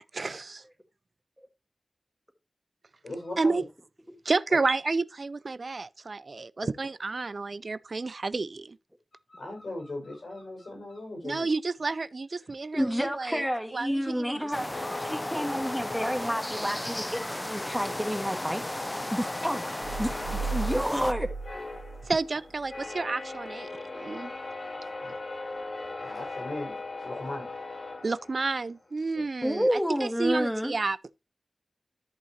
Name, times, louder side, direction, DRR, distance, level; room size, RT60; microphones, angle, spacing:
voice 1, 0.1-0.6 3.4-3.6 4.2-8.8 11.2-13.4 13.7-14.7 22.0-24.3 28.0-31.0, right 3 dB, 65° right, 0.4 m, -30 dB
voice 2, 3.0-3.6 6.6-6.7 9.3-11.5 18.2-18.3 21.0-21.1 24.8-25.1 26.0-27.5, left 2 dB, 80° left, 5.7 m, -39 dB
voice 3, 12.7-18.6 19.1-19.6 20.0-21.3 29.4-30.7, equal, ahead, 1.6 m, -29 dB
sound 1, 14.5-21.1, left 1 dB, 15° left, 0.5 m, -35 dB
sound 2, 14.7-17.2 17.5-28.8, left 2 dB, 55° left, 3.7 m, -40 dB
sound 3, 19.8-22.8, right 4 dB, 90° right, 1.2 m, -35 dB
13.5 x 5.7 x 3.0 m
wide cardioid pair, 55°, 0 cm